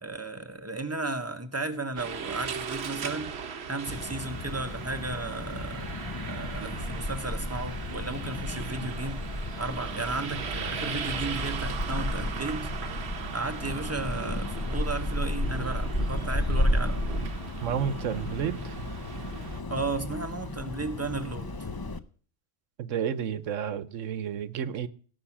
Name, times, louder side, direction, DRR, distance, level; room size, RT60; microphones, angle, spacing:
voice 1, 0.0-3.3 3.7-5.9 6.3-9.2 9.6-12.7 13.3-17.0 19.7-21.7, right 3 dB, 15° right, 1.0 m, -34 dB
sound 1, 2.0-19.6, right 6 dB, 60° right, 1.1 m, -38 dB
sound 2, 3.9-22.0, left 1 dB, 25° left, 0.5 m, -33 dB
voice 2, 17.6-18.8 22.8-24.9, right 8 dB, 85° right, 1.2 m, -31 dB
17.5 x 6.2 x 7.2 m
omnidirectional pair, 1.3 m